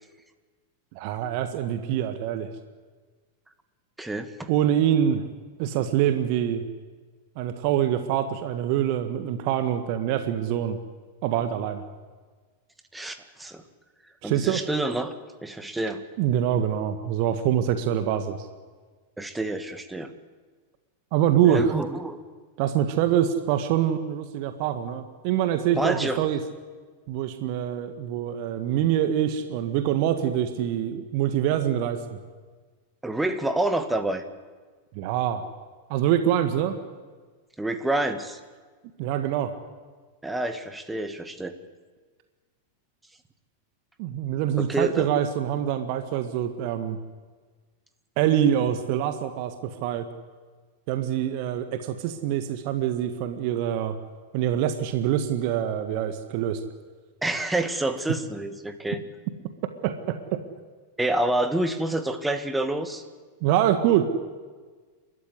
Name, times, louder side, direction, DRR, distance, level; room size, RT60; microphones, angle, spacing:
voice 1, 0.9-2.5 4.5-5.3 5.6-6.6 7.3-10.8 11.2-11.9 14.2-14.6 16.2-18.4 21.1-21.8 22.6-26.4 27.1-32.2 34.9-35.4 35.9-36.8 39.0-39.5 44.0-47.0 48.2-50.1 50.9-53.9 54.3-56.6 59.8-60.4 63.4-64.1, right 10 dB, 45° right, 8 dB, 1.7 m, -25 dB
voice 2, 4.0-4.5 12.9-13.6 14.2-15.1 15.4-16.0 19.2-20.1 21.4-22.2 25.8-26.3 33.0-34.2 37.6-38.4 40.2-41.6 44.6-45.1 57.2-59.0 61.0-63.0, right 2 dB, 5° right, 8 dB, 2.1 m, -28 dB
29.5 x 13.5 x 9.7 m, 1.4 s
figure-of-eight pair, 90°, 0 cm